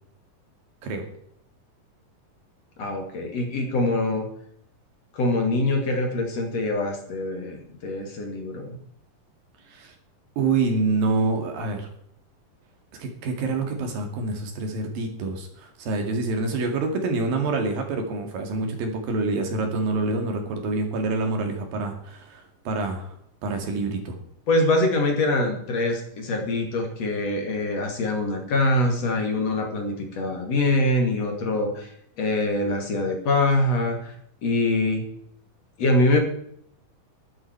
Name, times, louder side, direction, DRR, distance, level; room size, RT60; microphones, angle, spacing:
voice 1, 2.8-4.3 5.1-8.8 24.5-31.9 32.2-34.1 34.4-35.0 35.8-36.2, left 2 dB, 50° left, 3 dB, 3.2 m, -24 dB
voice 2, 10.4-11.9 13.0-23.1 23.4-24.2, right 3 dB, 85° right, 4 dB, 4.1 m, -27 dB
12.5 x 12.0 x 4.6 m, 0.70 s
omnidirectional pair, 4.0 m